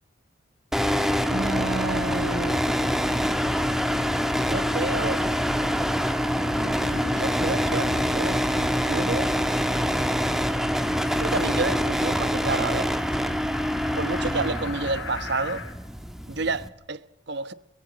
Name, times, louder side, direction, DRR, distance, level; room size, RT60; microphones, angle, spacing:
sound 1, 0.7-16.7, equal, ahead, 1.4 m, -25 dB
voice 1, 1.3-2.6 4.5-5.2 6.6-9.3 11.0-12.9 13.9-15.6 16.3-17.0 17.3-17.5, right 3 dB, 60° right, 1.1 m, -30 dB
sound 2, 10.8-15.7, left 5 dB, 90° left, 4.0 m, -43 dB
23.0 x 22.0 x 6.3 m
head